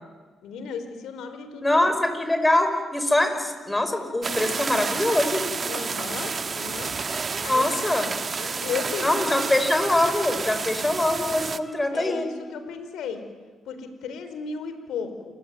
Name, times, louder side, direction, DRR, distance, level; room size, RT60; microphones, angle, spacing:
voice 1, 0.4-1.8 5.7-6.9 7.4-7.7 8.4-9.5 11.9-13.2 13.7-15.1, left 6 dB, 80° left, 9 dB, 4.2 m, -34 dB
voice 2, 1.6-5.5 7.5-8.1 9.0-12.3, left 1 dB, 15° left, 8 dB, 5.9 m, -23 dB
sound 1, 4.2-11.6, right 5 dB, 45° right, 1.4 m, -30 dB
28.5 x 22.0 x 9.5 m, 1.4 s
supercardioid pair, 60°, 0 cm